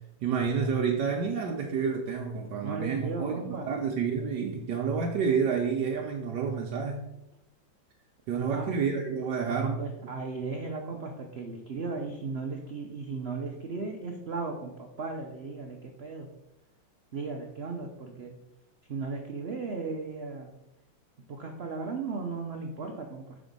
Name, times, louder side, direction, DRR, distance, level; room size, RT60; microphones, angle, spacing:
voice 1, 0.2-7.0 8.3-9.8, right 6 dB, 70° right, 1 dB, 1.2 m, -29 dB
voice 2, 2.6-3.7 8.3-8.7 9.5-16.3 17.1-18.4 18.9-20.5 21.3-23.4, right 4 dB, 85° right, 2 dB, 0.5 m, -36 dB
6.0 x 4.3 x 5.2 m, 0.89 s
omnidirectional pair, 2.1 m